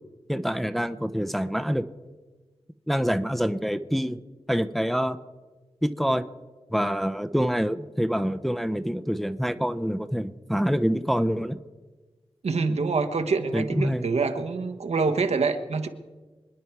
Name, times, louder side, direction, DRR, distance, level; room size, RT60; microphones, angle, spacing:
voice 1, 0.3-1.8 2.9-4.2 4.5-5.2 5.8-6.2 6.7-11.6 13.5-14.0, equal, ahead, 11 dB, 0.6 m, -26 dB
voice 2, 12.4-15.9, right 4 dB, 85° right, 7 dB, 1.2 m, -26 dB
26.5 x 10.0 x 4.7 m, 1.3 s
wide cardioid pair, 110°, 11 cm